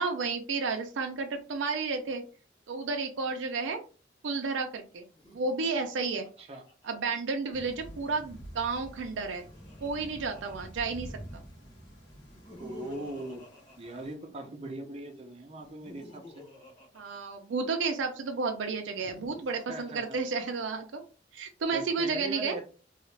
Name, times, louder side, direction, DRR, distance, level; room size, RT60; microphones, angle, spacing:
voice 1, 0.0-2.2 2.7-3.8 4.2-5.1 5.3-6.3 6.8-9.5 9.8-11.1 16.9-21.0 21.3-22.6, right 4 dB, 90° right, 4 dB, 0.5 m, -32 dB
Laughter, 5.1-7.6 8.9-11.3 12.2-14.7 15.5-18.0 18.8-20.8, left 1 dB, 25° left, 1.1 m, -51 dB
Thunder / Rain, 7.5-14.2, right 1 dB, 70° left, 1.3 m, -48 dB
voice 2, 12.6-13.4 13.8-16.4 19.7-20.2 21.7-22.6, right 1 dB, 35° right, 3 dB, 0.5 m, -40 dB
2.8 x 2.4 x 3.2 m, 0.37 s
head